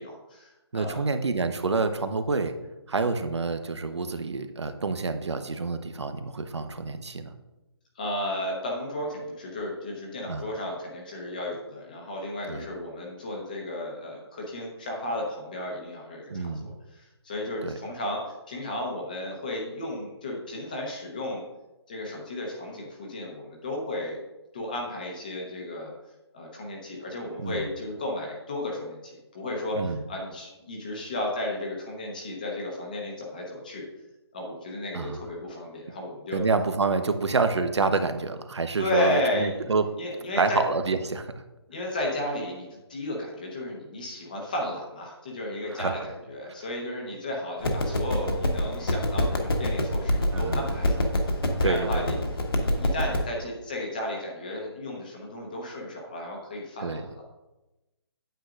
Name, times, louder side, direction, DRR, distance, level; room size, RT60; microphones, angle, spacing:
voice 1, 0.0-1.1 8.0-21.4 21.9-24.2 24.5-25.9 26.3-33.9 34.3-36.4 38.8-39.5 40.0-40.6 41.7-52.2 52.6-57.2, left 1 dB, 20° left, -1 dB, 0.9 m, -33 dB
voice 2, 0.7-2.5 2.9-7.3 10.3-10.5 12.5-12.6 16.3-16.7 17.6-17.8 27.4-27.7 29.7-30.0 34.9-35.2 36.3-39.9 40.4-41.3 45.7-45.9 50.3-50.6 51.6-52.0 56.8-57.1, right 4 dB, 90° right, 9 dB, 0.9 m, -27 dB
sound 1, 47.6-53.2, left 1 dB, 60° left, 1.4 m, -26 dB
9.1 x 8.1 x 2.5 m, 1.0 s
hypercardioid pair, 175°, 14 cm